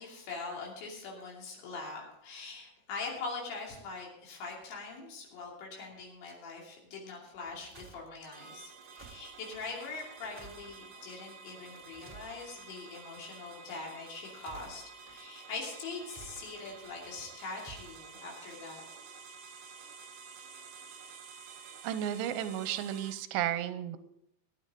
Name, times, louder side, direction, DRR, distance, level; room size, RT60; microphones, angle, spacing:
voice 1, 0.0-18.8, left 4 dB, 80° left, -2 dB, 5.0 m, -43 dB
sound 1, 7.3-8.0 8.8-9.6 10.2-10.7 11.7-12.7 14.2-15.1 16.0-16.9 17.5-18.0, right 4 dB, 35° right, 0.9 m, -53 dB
sound 2, 8.3-23.1, right 5 dB, 70° right, 2.1 m, -50 dB
voice 2, 21.8-24.0, right 11 dB, 85° right, 11 dB, 2.9 m, -33 dB
19.0 x 9.8 x 3.7 m, 0.77 s
omnidirectional pair, 5.1 m